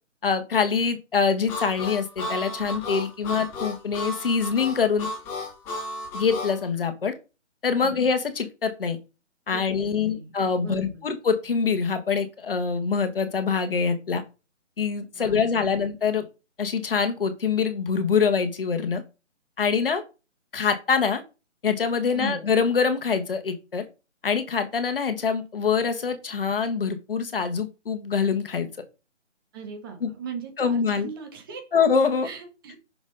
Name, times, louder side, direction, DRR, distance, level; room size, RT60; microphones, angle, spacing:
voice 1, 0.2-5.1 6.1-7.1 7.6-9.0 9.5-14.2 14.8-16.3 16.6-19.0 19.6-20.0 20.5-21.2 21.6-23.8 24.2-28.7 30.0-30.1 30.6-31.1 31.7-32.3, left 5 dB, 50° left, 8 dB, 1.6 m, -24 dB
Harmonica, 1.5-6.6, left 2 dB, 5° left, 1.0 m, -33 dB
voice 2, 9.5-10.3 10.6-11.0 15.1-15.8 22.1-22.4 29.5-31.6 32.2-32.8, right 6 dB, 20° right, 4 dB, 1.5 m, -39 dB
7.0 x 6.4 x 4.0 m, 0.30 s
figure-of-eight pair, 160°, 37 cm